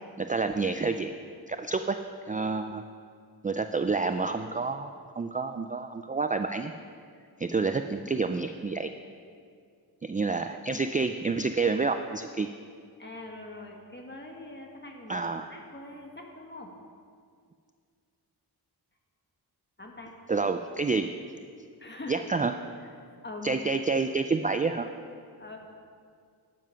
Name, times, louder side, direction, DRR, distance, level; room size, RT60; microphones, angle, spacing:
voice 1, 0.2-1.1 1.5-2.0 2.3-2.8 3.4-6.7 7.4-8.9 10.0-12.5 15.1-15.5 20.3-21.2 22.1-22.5 23.4-24.9, right 4 dB, 20° right, 8 dB, 0.3 m, -28 dB
voice 2, 13.0-15.2 15.5-16.7 19.8-20.1 21.8-22.4 22.8-22.9 23.2-23.5 25.4-25.6, left 2 dB, 25° left, 1 dB, 1.6 m, -43 dB
12.5 x 7.6 x 5.7 m, 2.2 s
wide cardioid pair, 100°, 39 cm